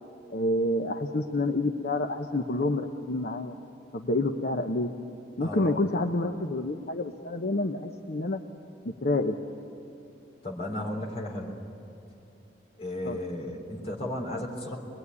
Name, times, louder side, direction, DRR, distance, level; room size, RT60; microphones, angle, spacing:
voice 1, 0.3-3.5 3.9-4.9 5.4-8.4 8.8-9.4 13.0-13.2, left 2 dB, 55° left, 4 dB, 1.0 m, -28 dB
voice 2, 5.4-5.8 10.4-11.6 12.8-14.8, left 1 dB, 35° left, -1 dB, 3.9 m, -34 dB
24.5 x 20.5 x 9.7 m, 2.7 s
head